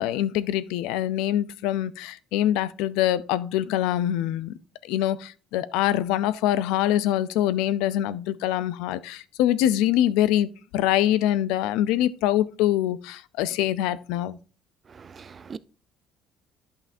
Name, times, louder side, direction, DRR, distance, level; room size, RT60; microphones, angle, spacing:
voice 1, 0.0-4.5 4.8-14.4, left 12 dB, 90° left, 0.4 m, -24 dB
voice 2, 15.0-15.6, right 6 dB, 30° right, 0.3 m, -41 dB
10.5 x 5.7 x 2.6 m
cardioid pair, 145°, 0 cm